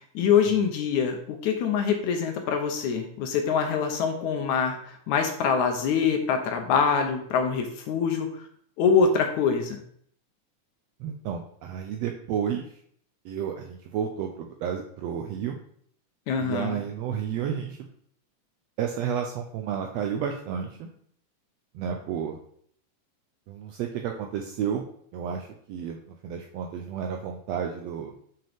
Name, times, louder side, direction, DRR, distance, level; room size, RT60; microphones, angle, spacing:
voice 1, 0.1-8.3 8.8-9.8 16.3-16.8, left 6 dB, 75° left, 4 dB, 2.1 m, -24 dB
voice 2, 11.0-12.7 13.2-15.6 16.4-17.9 18.8-20.9 21.7-22.4 23.5-24.8 25.1-28.1, right 8 dB, 85° right, 3 dB, 1.4 m, -31 dB
7.1 x 6.2 x 3.5 m, 0.63 s
omnidirectional pair, 3.7 m